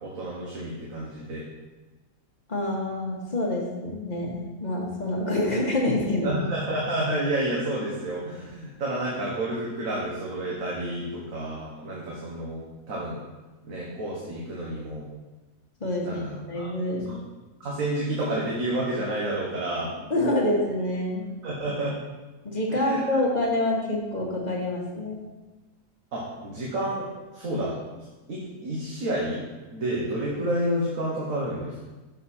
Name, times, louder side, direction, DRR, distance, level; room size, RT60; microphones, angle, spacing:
voice 1, 0.0-1.5 6.2-13.2 13.6-15.1 16.0-16.7 17.1-17.2 17.6-19.9 21.4-22.0 22.7-23.0 26.1-27.1 27.3-29.4 29.7-31.9, right 1 dB, 70° right, -5 dB, 1.7 m, -30 dB
voice 2, 2.5-6.4 15.8-17.0 20.1-21.4 22.4-25.2, left 1 dB, 30° left, -2 dB, 1.3 m, -27 dB
6.6 x 6.5 x 4.2 m, 1.2 s
omnidirectional pair, 1.5 m